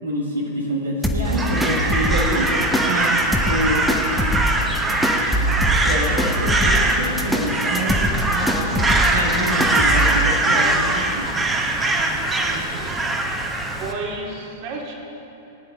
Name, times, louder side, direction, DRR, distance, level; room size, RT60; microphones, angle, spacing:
voice 1, 0.0-2.5 2.9-3.9 5.8-8.8 9.1-11.3, equal, 85° right, -3 dB, 2.0 m, -26 dB
sound 1, 1.0-10.2, equal, ahead, 1.1 m, -24 dB
Crow, 1.2-13.9, right 2 dB, 15° right, 1.3 m, -22 dB
voice 2, 6.7-7.2 11.8-13.1 13.8-14.9, right 3 dB, 45° right, -1 dB, 2.4 m, -34 dB
20.0 x 9.8 x 3.8 m, 2.9 s
figure-of-eight pair, 100°, 0 cm